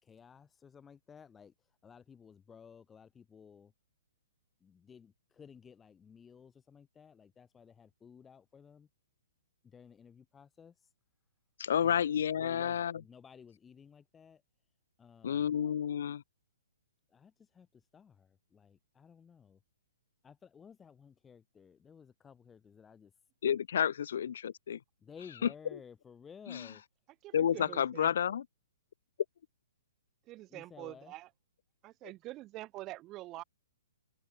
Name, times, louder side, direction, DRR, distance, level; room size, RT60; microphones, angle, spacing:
voice 1, 0.0-3.7 4.6-8.9 9.6-10.9 11.8-14.4 15.0-15.7 17.1-19.6 20.2-23.1 25.0-26.8 27.5-27.8 30.5-31.1, left 7 dB, 10° left, 5.8 m, -56 dB
voice 2, 11.6-12.9 15.2-16.2 23.4-24.8 26.5-26.7 27.3-28.4, left 8 dB, 60° left, 0.8 m, -30 dB
voice 3, 27.2-28.4 30.3-31.3 31.8-33.4, right 17 dB, 20° right, 2.9 m, -46 dB
hypercardioid pair, 160°, 0 cm